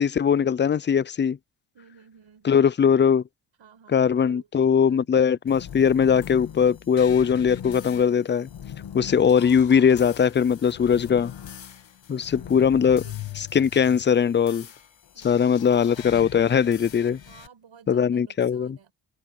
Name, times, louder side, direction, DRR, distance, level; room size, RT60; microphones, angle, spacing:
voice 1, 0.0-1.4 2.4-3.2 3.9-8.5 8.9-11.3 12.1-13.0 13.4-14.7 15.2-17.2 17.9-18.8, left 7 dB, 25° left, 0.3 m, -20 dB
voice 2, 1.7-2.5 3.6-5.4 12.1-13.2 17.2-18.9, right 7 dB, 70° right, 5.5 m, -53 dB
sound 1, 5.5-17.5, left 9 dB, 70° left, 2.3 m, -41 dB
cardioid pair, 90°, 46 cm